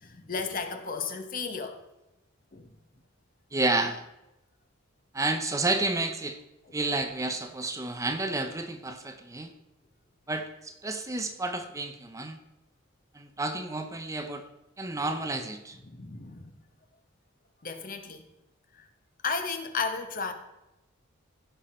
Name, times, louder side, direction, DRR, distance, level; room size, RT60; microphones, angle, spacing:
voice 1, 0.0-1.8 2.5-2.7 15.8-16.5 17.6-18.2 18.7-18.8 19.2-20.3, left 5 dB, 45° left, 7 dB, 1.1 m, -34 dB
voice 2, 3.5-4.1 5.1-6.4 6.7-9.5 10.3-12.4 13.1-14.4 14.8-15.8, right 2 dB, 15° right, 7 dB, 0.7 m, -30 dB
15.5 x 5.9 x 4.3 m, 0.93 s
head